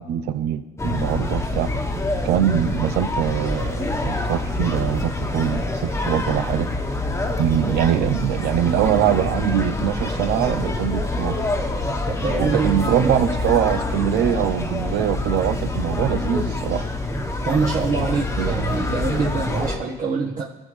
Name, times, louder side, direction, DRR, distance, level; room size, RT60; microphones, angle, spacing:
voice 1, 0.0-1.7 2.2-6.7 7.4-11.4 12.4-16.9 18.4-18.6, right 10 dB, 80° right, 10 dB, 0.7 m, -23 dB
sound 1, 0.8-19.8, left 2 dB, 15° left, 1.3 m, -26 dB
voice 2, 12.1-13.1 17.4-20.4, right 5 dB, 50° right, -4 dB, 1.5 m, -24 dB
19.0 x 7.3 x 3.4 m, 1.2 s
cardioid pair, 110°, 17 cm